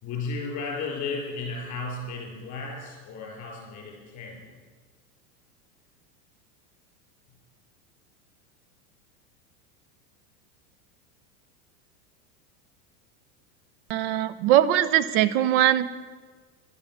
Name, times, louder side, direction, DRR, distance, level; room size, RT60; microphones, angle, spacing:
voice 1, 0.0-4.6, left 4 dB, 40° left, -1 dB, 4.1 m, -34 dB
voice 2, 13.9-16.0, right 12 dB, 55° right, 14 dB, 0.8 m, -21 dB
11.5 x 10.0 x 7.1 m, 1.4 s
supercardioid pair, 120°, 44 cm